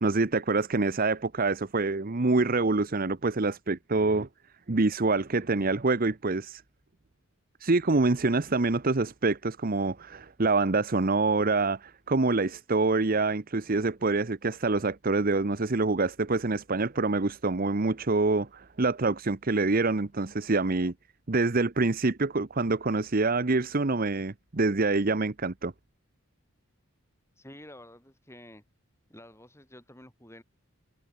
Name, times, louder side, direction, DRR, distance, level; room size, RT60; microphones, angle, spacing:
voice 1, 0.0-4.3 4.7-6.6 7.6-20.9 21.3-25.7, right 3 dB, 40° right, 0.9 m, -26 dB
voice 2, 27.4-28.6 29.1-30.4, left 1 dB, 10° left, 7.8 m, -50 dB
head